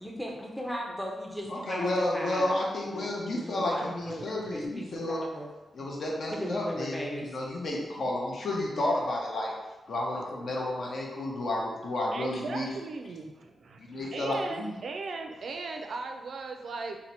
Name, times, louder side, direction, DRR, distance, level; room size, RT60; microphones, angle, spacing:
voice 1, 0.0-2.6 2.8-5.5 6.3-7.4, equal, ahead, -1 dB, 0.5 m, -37 dB
voice 2, 1.5-5.2 5.7-9.5 9.9-12.7 13.9-14.7, left 1 dB, 60° left, -2 dB, 0.7 m, -31 dB
voice 3, 12.1-13.3 14.1-17.0, right 3 dB, 65° right, 4 dB, 0.3 m, -37 dB
2.8 x 2.1 x 4.1 m, 1.1 s
wide cardioid pair, 110°, 0 cm